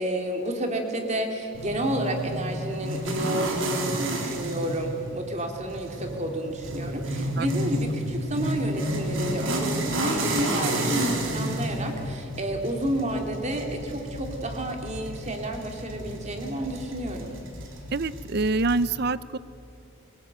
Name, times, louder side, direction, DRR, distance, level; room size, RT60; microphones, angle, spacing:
voice 1, 0.0-17.3, right 1 dB, 35° right, 3 dB, 3.1 m, -30 dB
sound 1, 1.5-18.9, right 1 dB, 80° right, 4.0 m, -31 dB
voice 2, 17.9-19.4, right 3 dB, 55° right, 17 dB, 0.7 m, -25 dB
24.0 x 21.5 x 9.3 m, 2.7 s
head